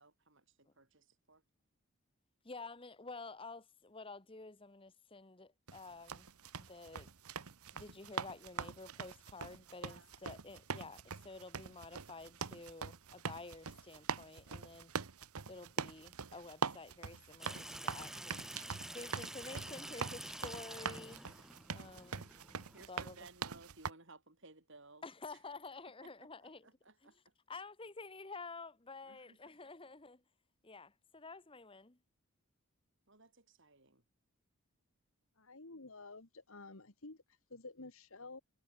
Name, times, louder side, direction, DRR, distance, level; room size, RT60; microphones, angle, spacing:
voice 1, 0.0-1.4 9.9-10.1 22.7-25.0 26.0-27.3 29.0-29.4 33.1-34.0, right 3 dB, 55° right, 5.3 m, -59 dB
voice 2, 2.4-6.3 6.6-7.1 7.7-14.9 15.5-18.4 18.9-21.3 21.7-22.3 22.9-23.2 25.0-26.7 27.0-27.1 27.5-30.2 30.6-32.0, left 3 dB, 25° left, 1.2 m, -50 dB
sound 1, 5.7-23.9, right 5 dB, 85° right, 1.1 m, -43 dB
Water tap faucet / Sink (filling or washing), 17.4-22.8, right 1 dB, ahead, 0.5 m, -48 dB
voice 3, 35.4-38.4, left 3 dB, 65° left, 1.8 m, -51 dB
head